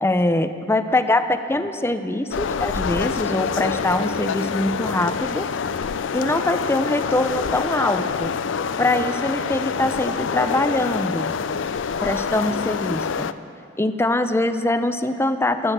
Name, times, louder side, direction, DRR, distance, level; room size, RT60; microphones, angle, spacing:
voice 1, 0.0-5.5 6.1-8.3 8.8-11.3 12.0-13.3 13.8-15.7, left 2 dB, 15° left, 10 dB, 0.6 m, -23 dB
sound 1, 2.3-13.3, left 6 dB, 70° left, 0.4 m, -26 dB
16.5 x 11.0 x 6.2 m, 2.5 s
head